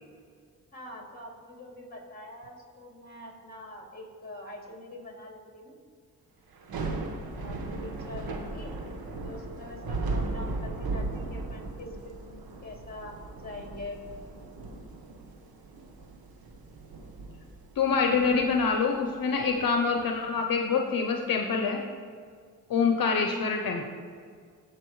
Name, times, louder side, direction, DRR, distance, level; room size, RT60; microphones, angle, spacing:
voice 1, 0.7-5.8 7.3-8.8 9.2-14.0, left 1 dB, 25° left, 0 dB, 2.7 m, -44 dB
Thunder / Rain, 6.5-19.7, right 3 dB, 80° right, 1.3 m, -37 dB
voice 2, 17.8-21.8 22.7-23.9, left 5 dB, 70° left, 3 dB, 0.9 m, -26 dB
15.5 x 6.5 x 3.2 m, 2.1 s
cardioid pair, 60°, 36 cm